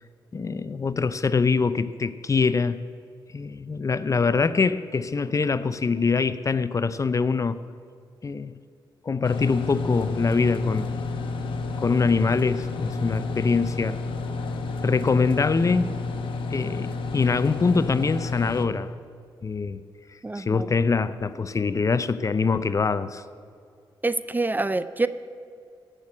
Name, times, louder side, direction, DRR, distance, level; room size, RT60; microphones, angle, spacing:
voice 1, 0.3-2.8 3.3-7.6 8.2-8.6 9.0-10.9 11.8-14.0 14.8-15.9 16.5-18.9 19.4-19.8 20.3-23.2, left 4 dB, 40° left, 14 dB, 0.5 m, -24 dB
sound 1, 9.2-18.7, left 3 dB, 75° left, 1.1 m, -30 dB
voice 2, 20.2-20.7 24.0-25.1, right 2 dB, 20° right, 14 dB, 0.5 m, -26 dB
15.5 x 6.1 x 8.6 m, 2.3 s
cardioid pair, 65°, 9 cm